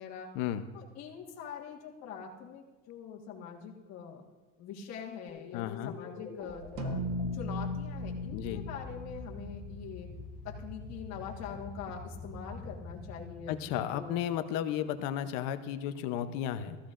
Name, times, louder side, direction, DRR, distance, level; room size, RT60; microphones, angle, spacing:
voice 1, 0.0-0.3 0.7-4.2 4.6-7.0 7.3-10.1 10.4-14.1, left 7 dB, 45° left, -1 dB, 1.6 m, -44 dB
sound 1, 5.3-14.6, left 3 dB, 20° left, 1.2 m, -46 dB
voice 2, 5.5-6.0 8.3-8.6 13.5-16.8, left 10 dB, 60° left, 11 dB, 0.8 m, -33 dB
sound 2, 6.8-11.4, left 1 dB, 50° right, 1.1 m, -38 dB
15.5 x 14.5 x 2.5 m, 1.2 s
cardioid pair, 145°, 37 cm